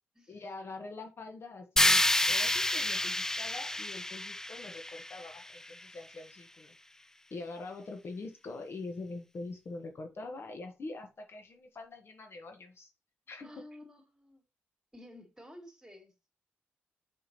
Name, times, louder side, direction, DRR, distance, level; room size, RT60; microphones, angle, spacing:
voice 1, 0.3-6.8 7.3-12.9 13.3-13.5, left 3 dB, 55° left, 1.1 m, -44 dB
sound 1, 1.8-5.8, left 1 dB, 10° left, 0.3 m, -29 dB
voice 2, 13.4-14.4 14.9-16.1, left 1 dB, 10° right, 3.0 m, -52 dB
5.8 x 5.7 x 2.9 m
supercardioid pair, 50°, 5 cm